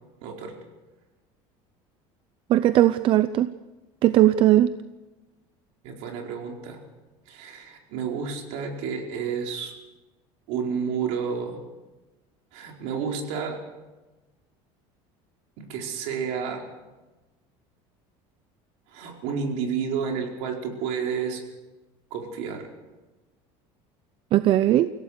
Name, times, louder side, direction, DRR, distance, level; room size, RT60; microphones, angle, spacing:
voice 1, 0.2-0.5 5.8-6.8 7.3-9.7 10.5-11.6 12.5-13.6 15.6-16.6 18.9-21.4 22.1-22.7, right 6 dB, 70° right, 1 dB, 4.7 m, -30 dB
voice 2, 2.5-3.5 4.0-4.7 24.3-24.9, right 13 dB, 45° right, 13 dB, 0.6 m, -18 dB
25.5 x 17.0 x 6.7 m, 1.2 s
cardioid pair, 145°, 12 cm